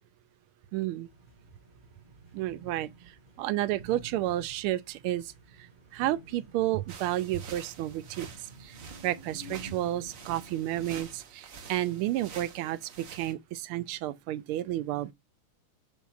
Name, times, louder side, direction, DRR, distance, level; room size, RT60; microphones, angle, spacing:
voice 1, 0.7-1.1 2.3-2.9 3.4-5.3 5.9-8.3 8.6-8.7 9.0-15.1, right 14 dB, 90° right, 1.5 m, -31 dB
sound 1, 1.0-11.0, right 2 dB, 20° right, 4.6 m, -50 dB
sound 2, 6.9-13.3, right 5 dB, 50° right, 1.2 m, -48 dB
8.0 x 6.2 x 2.4 m
omnidirectional pair, 2.3 m